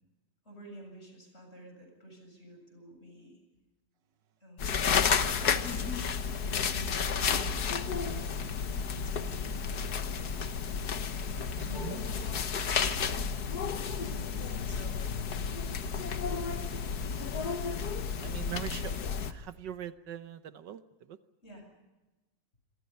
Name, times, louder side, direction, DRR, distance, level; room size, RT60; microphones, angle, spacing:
voice 1, 0.4-3.4 4.4-4.8 5.1-6.1 6.4-10.1 11.1-12.3 13.2-17.1 21.4-21.7, right 1 dB, 35° left, 3 dB, 7.8 m, -51 dB
sound 1, 4.6-19.3, left 6 dB, 60° left, 1.7 m, -32 dB
voice 2, 11.6-12.0 18.2-18.9 19.3-20.8 21.1-21.2, right 11 dB, 80° right, 11 dB, 1.6 m, -41 dB
27.5 x 25.5 x 5.4 m, 1.1 s
omnidirectional pair, 1.9 m